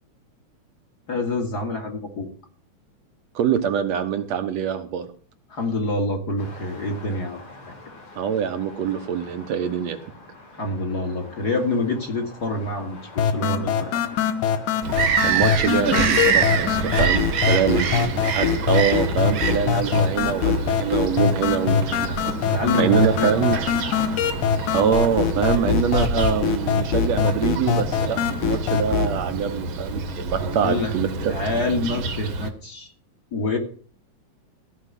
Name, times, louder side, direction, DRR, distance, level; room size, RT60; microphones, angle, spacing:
voice 1, 1.1-2.3 5.5-7.4 10.6-14.0 17.7-17.8 22.4-23.3 30.3-30.9 31.2-32.9 33.3-33.6, left 2 dB, 35° left, 3 dB, 2.2 m, -27 dB
voice 2, 3.4-5.1 8.2-10.0 15.2-22.2 22.7-23.6 24.7-31.3, right 8 dB, 70° right, 7 dB, 2.1 m, -24 dB
sound 1, 6.4-25.6, left 3 dB, 65° left, 6.0 m, -45 dB
sound 2, 13.2-29.2, left 7 dB, 80° left, 2.6 m, -23 dB
Bird vocalization bird call bird song, 14.8-32.5, right 5 dB, 50° right, 1.9 m, -27 dB
16.0 x 5.3 x 9.9 m, 0.43 s
omnidirectional pair, 3.4 m